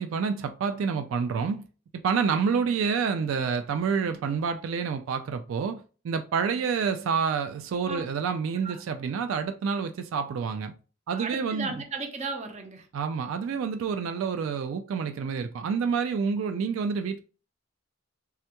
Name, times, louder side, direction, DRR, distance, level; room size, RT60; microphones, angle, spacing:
voice 1, 0.0-1.7 1.9-10.7 11.1-11.8 12.9-17.2, right 6 dB, 85° right, 0.3 m, -28 dB
voice 2, 11.1-12.9, right 3 dB, 35° right, 0.6 m, -35 dB
3.4 x 2.2 x 2.8 m
head